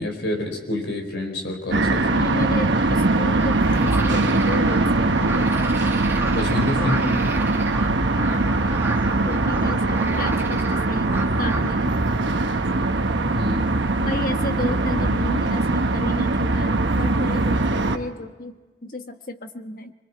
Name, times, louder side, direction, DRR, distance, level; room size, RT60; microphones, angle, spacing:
voice 1, 0.0-2.3 6.3-7.0 13.3-13.8, left 2 dB, 75° left, 3 dB, 4.3 m, -28 dB
sound 1, 1.7-18.0, right 2 dB, 85° right, 1.1 m, -21 dB
voice 2, 2.1-5.6 6.8-7.3 8.1-8.5 9.2-12.0 14.0-19.9, left 2 dB, 50° left, 6 dB, 1.3 m, -33 dB
sound 2, 3.4-11.7, right 2 dB, 15° right, 1.3 m, -33 dB
26.5 x 21.5 x 4.6 m, 1.2 s
head